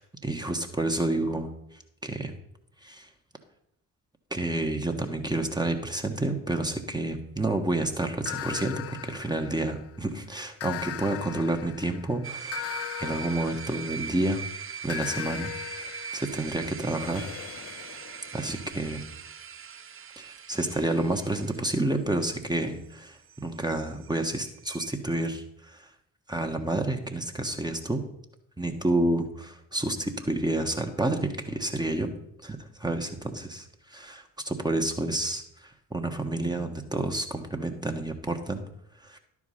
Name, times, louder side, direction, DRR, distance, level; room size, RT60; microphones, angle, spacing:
voice 1, 0.0-1.5 2.0-2.3 2.8-3.1 4.3-14.4 14.8-17.3 18.3-19.0 20.2-25.9 26.3-28.0 28.6-32.1 32.4-33.6 33.9-38.6 39.0-39.2, right 1 dB, 10° right, 4 dB, 1.4 m, -29 dB
sound 1, 8.2-10.0 10.6-14.3 14.9-18.6, left 15 dB, 40° left, 0.4 m, -39 dB
sound 2, 12.2-24.9, right 6 dB, 30° right, 0.7 m, -41 dB
11.5 x 4.9 x 5.7 m, 0.77 s
hypercardioid pair, 40°, 40 cm